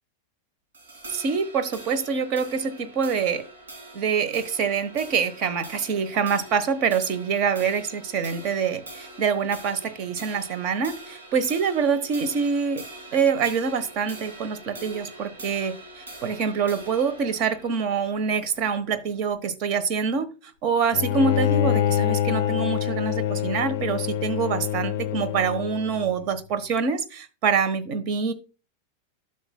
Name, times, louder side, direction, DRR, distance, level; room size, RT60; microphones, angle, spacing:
sound 1, 0.7-19.3, right 2 dB, 65° right, 2.8 m, -43 dB
voice 1, 1.1-3.4 3.9-12.8 13.1-20.3 20.6-28.3, right 6 dB, 40° right, 12 dB, 1.1 m, -25 dB
Bowed string instrument, 20.9-26.1, left 11 dB, 50° left, 0.4 m, -25 dB
12.0 x 6.5 x 2.2 m, 0.33 s
figure-of-eight pair, 90°, 0 cm